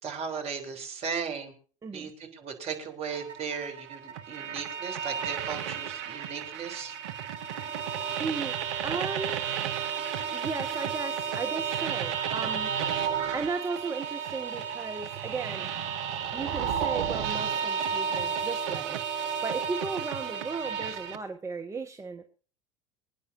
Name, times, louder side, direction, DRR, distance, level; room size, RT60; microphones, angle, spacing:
voice 1, 0.0-1.5 1.9-7.0 13.3-13.4, right 6 dB, 35° right, 3 dB, 3.7 m, -36 dB
sound 1, 3.1-21.2, right 7 dB, 60° right, 1.2 m, -32 dB
voice 2, 8.2-8.5 8.8-9.4 10.3-12.7 13.3-15.7 16.3-19.0 19.4-22.3, right 4 dB, 15° right, 5 dB, 1.3 m, -35 dB
26.0 x 9.8 x 2.7 m, 0.39 s
figure-of-eight pair, 75°, 17 cm